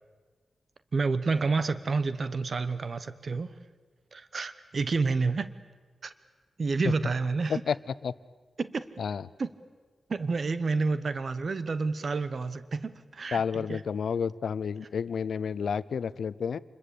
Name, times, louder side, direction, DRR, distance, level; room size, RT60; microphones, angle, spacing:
voice 1, 0.9-3.5 4.1-5.5 6.0-6.1 6.6-7.6 8.6-8.9 9.4-9.5 10.1-13.8, right 4 dB, 45° right, 14 dB, 1.0 m, -29 dB
voice 2, 13.3-16.6, left 6 dB, 80° left, 17 dB, 0.7 m, -30 dB
28.0 x 21.5 x 8.5 m, 1.4 s
wide cardioid pair, 175°, 0 cm